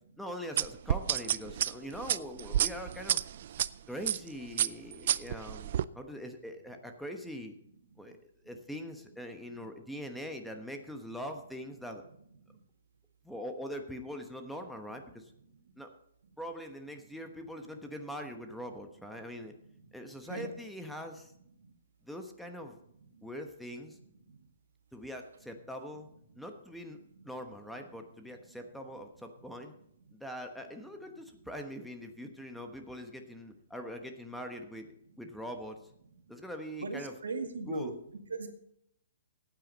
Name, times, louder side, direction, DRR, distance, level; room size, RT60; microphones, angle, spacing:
voice 1, 0.2-3.2 3.6-7.5 8.0-8.2 8.4-12.0 13.2-15.3 15.8-15.9 16.4-19.5 19.9-21.3 22.0-22.8 23.2-24.0 24.9-26.1 26.3-27.0 27.2-29.7 30.1-34.9 35.2-35.8 36.3-37.2 37.7-38.0, equal, ahead, 4 dB, 1.1 m, -42 dB
sound 1, 0.6-3.7 4.1-4.3 4.6-5.8, right 11 dB, 55° right, 0.4 m, -29 dB
voice 2, 36.8-37.9 38.3-38.5, right 4 dB, 80° right, 5 dB, 2.0 m, -37 dB
15.0 x 9.2 x 4.1 m, 0.72 s
hypercardioid pair, 130°, 0 cm